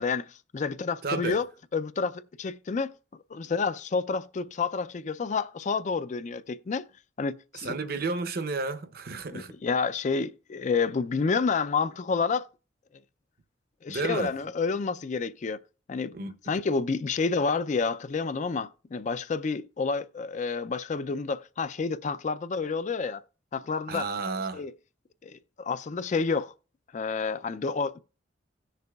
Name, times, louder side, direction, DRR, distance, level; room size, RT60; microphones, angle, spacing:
voice 1, 0.0-1.4 1.7-2.9 3.3-6.8 7.2-7.8 9.3-12.5 13.8-15.6 15.9-16.1 16.5-23.2 23.5-24.1 24.5-24.7 25.2-26.5 26.9-28.0, left 4 dB, 40° left, 0.4 m, -29 dB
voice 2, 1.0-1.4 7.5-9.5 13.9-14.3 16.1-16.4 23.9-24.6, right 3 dB, 55° right, 0.7 m, -32 dB
17.0 x 6.6 x 2.3 m
head